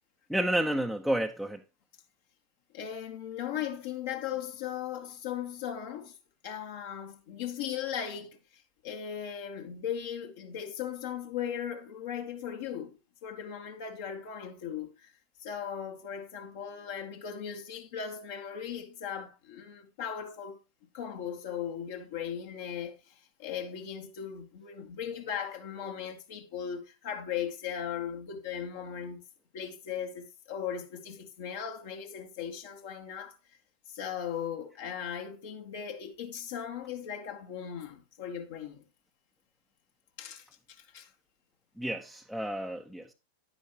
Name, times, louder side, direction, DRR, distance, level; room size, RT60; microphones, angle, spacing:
voice 1, 0.3-1.6 41.8-43.1, right 1 dB, ahead, 1.0 m, -30 dB
voice 2, 2.7-6.2 6.4-12.9 13.2-15.1 15.4-20.6 20.9-29.2 29.5-33.4 33.9-38.8 40.2-41.1, left 8 dB, 55° left, 1.9 m, -38 dB
11.0 x 10.0 x 3.1 m
figure-of-eight pair, 90°, 0 cm